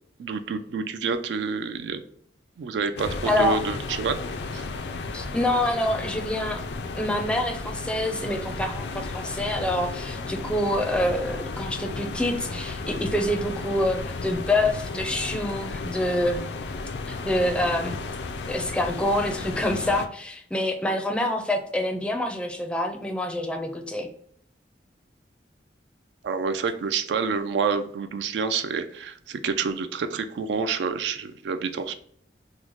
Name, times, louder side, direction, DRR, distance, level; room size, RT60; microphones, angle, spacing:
voice 1, 0.2-2.0 2.6-4.2 4.5-4.7 26.2-31.9, right 5 dB, 80° right, 9 dB, 0.3 m, -28 dB
sound 1, 3.0-20.1, left 3 dB, 70° left, 0.4 m, -34 dB
voice 2, 3.3-3.6 5.1-6.6 6.9-16.4 17.1-18.0 18.5-24.1, left 1 dB, 5° left, 4 dB, 0.4 m, -26 dB
3.1 x 2.0 x 3.7 m, 0.65 s
head